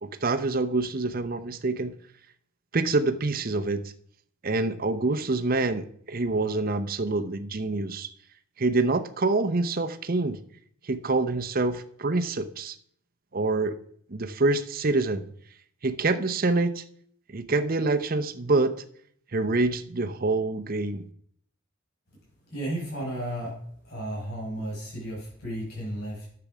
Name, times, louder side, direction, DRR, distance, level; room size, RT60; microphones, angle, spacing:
voice 1, 0.0-1.9 2.7-3.8 4.4-8.1 8.6-10.4 10.8-12.8 13.3-13.8 14.1-15.3 15.8-16.8 17.3-18.8 19.3-21.1, right 3 dB, 40° right, 0.7 m, -26 dB
voice 2, 22.5-23.6 23.8-26.2, right 1 dB, 50° left, 5.8 m, -33 dB
10.5 x 6.9 x 6.1 m
head